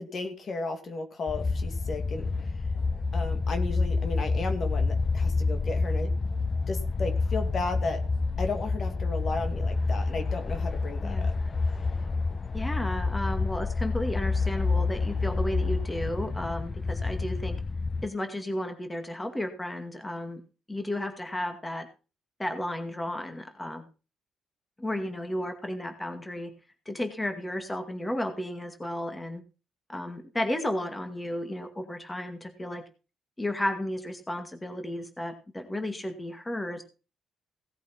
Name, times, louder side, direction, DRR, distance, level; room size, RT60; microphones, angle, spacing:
voice 1, 0.0-2.5 3.1-6.1 6.7-8.0 8.4-11.3 11.8-11.9, left 3 dB, 50° left, 6 dB, 2.6 m, -34 dB
sound 1, 1.3-18.1, left 3 dB, 35° left, 0.9 m, -28 dB
voice 2, 12.5-17.6 18.0-20.4 20.7-21.9 22.4-23.8 24.8-26.5 26.9-29.4 29.9-32.8 33.4-36.8, left 1 dB, 15° left, 6 dB, 2.2 m, -33 dB
17.5 x 8.2 x 4.5 m, 0.34 s
cardioid pair, 90°, 0 cm